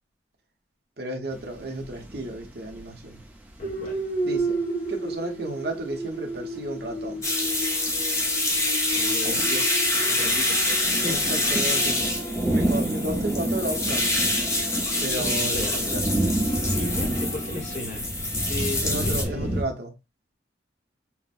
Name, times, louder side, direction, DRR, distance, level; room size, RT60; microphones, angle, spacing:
voice 1, 1.0-3.2 4.2-4.6 4.9-7.3 11.0-12.0 12.5-14.2 15.0-16.3 18.8-19.9, right 1 dB, 60° right, 1.0 m, -33 dB
sound 1, 1.3-3.2 3.6-4.4 4.9-5.1 7.0-7.1 7.4-8.6 8.8-19.6, right 1 dB, 10° right, 0.8 m, -30 dB
sound 2, 3.6-17.8, right 2 dB, 75° left, 2.5 m, -34 dB
voice 2, 3.6-4.0 8.5-8.6 8.9-10.6 11.0-11.3 15.2-15.9 16.6-18.1 18.5-19.7, left 1 dB, 40° left, 1.1 m, -35 dB
sound 3, 7.2-19.2, left 1 dB, 15° left, 0.9 m, -26 dB
5.8 x 2.2 x 2.5 m
head